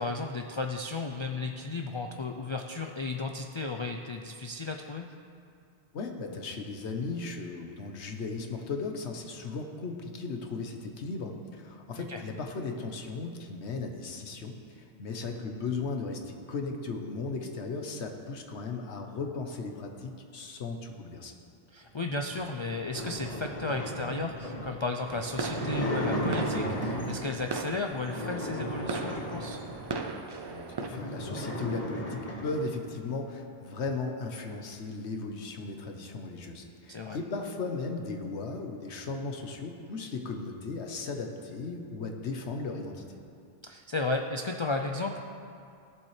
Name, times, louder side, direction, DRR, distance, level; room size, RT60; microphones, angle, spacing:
voice 1, 0.0-5.1 12.0-12.2 21.7-29.6 36.9-37.2 43.6-45.2, left 3 dB, 50° left, 3 dB, 0.3 m, -34 dB
voice 2, 5.9-21.3 30.5-43.2, left 3 dB, 85° left, 4 dB, 1.2 m, -36 dB
sound 1, 22.2-27.4 28.0-30.0 30.5-30.6 30.8-32.7, equal, 35° left, 1.4 m, -35 dB
sound 2, 25.1-30.9, right 3 dB, 40° right, 0.4 m, -38 dB
15.5 x 7.4 x 3.2 m, 2.4 s
omnidirectional pair, 1.1 m